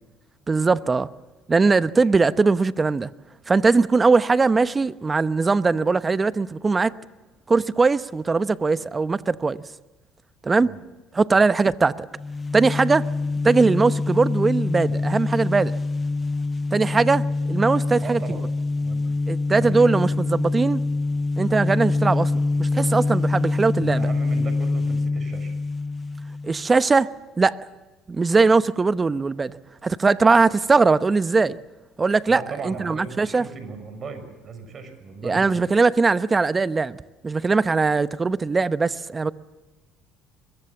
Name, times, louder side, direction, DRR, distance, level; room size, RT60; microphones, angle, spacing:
voice 1, 0.5-1.1 1.5-3.1 3.5-6.9 7.5-9.6 10.4-10.7 11.1-12.1 12.5-13.0 13.4-15.7 16.7-18.4 19.3-20.8 21.4-22.3 22.6-24.1 26.4-27.1 27.4-27.6 28.1-29.6 29.8-31.6 32.0-33.5 35.2-37.0 37.2-39.3, right 4 dB, 25° right, 1.0 m, -20 dB
voice 2, 1.8-2.1 10.6-10.8 11.3-11.4 18.0-18.4 18.8-19.1 19.6-19.9 23.8-25.5 32.3-35.7, right 5 dB, 45° right, 6.3 m, -37 dB
sound 1, 12.1-26.7, left 3 dB, 25° left, 0.8 m, -25 dB
23.5 x 22.0 x 7.2 m
hypercardioid pair, 70°, 0 cm